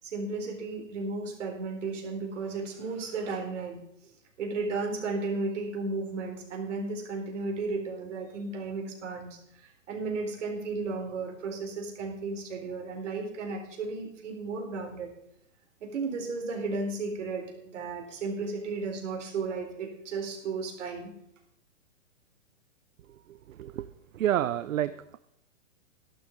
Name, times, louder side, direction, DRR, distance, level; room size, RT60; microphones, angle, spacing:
voice 1, 0.0-3.8 4.0-15.1 15.8-21.1, right 3 dB, 65° right, 1 dB, 4.0 m, -34 dB
voice 2, 23.3-23.9 24.1-25.2, right 11 dB, 80° right, 14 dB, 0.6 m, -29 dB
13.5 x 12.0 x 3.9 m, 0.75 s
hypercardioid pair, 150°, 39 cm